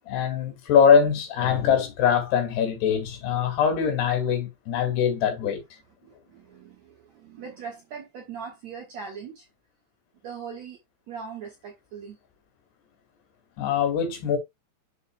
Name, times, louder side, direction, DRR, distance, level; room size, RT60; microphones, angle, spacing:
voice 1, 0.1-5.6 13.6-14.4, left 7 dB, 75° left, 4.1 m, -22 dB
voice 2, 6.0-9.5 10.2-10.8 11.1-12.2, right 6 dB, 60° right, 1.9 m, -40 dB
7.5 x 6.8 x 2.2 m
omnidirectional pair, 4.8 m